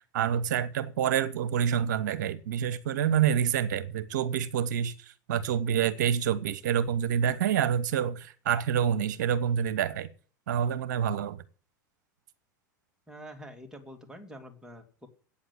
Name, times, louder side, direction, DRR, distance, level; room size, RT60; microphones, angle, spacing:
voice 1, 0.1-4.9 5.3-10.1 10.5-11.4, right 9 dB, 65° right, 1.0 m, -27 dB
voice 2, 13.1-15.1, equal, 5° right, 2.5 m, -46 dB
8.7 x 7.3 x 8.4 m
hypercardioid pair, 90°, 10 cm